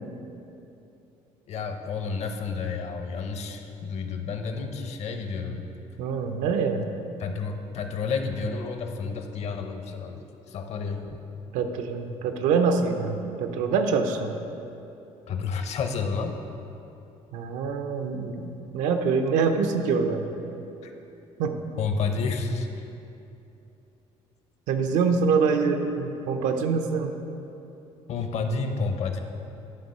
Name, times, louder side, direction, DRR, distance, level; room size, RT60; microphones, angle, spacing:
voice 1, 1.5-5.7 7.2-11.2 15.3-16.4 20.8-20.9 21.8-22.7 28.1-29.2, left 4 dB, 60° left, 6 dB, 0.8 m, -30 dB
voice 2, 6.0-6.8 11.5-14.4 17.3-20.2 21.4-21.6 24.7-27.2, right 5 dB, 85° right, 6 dB, 0.6 m, -25 dB
11.0 x 3.8 x 5.5 m, 2.9 s
cardioid pair, 105°, 13 cm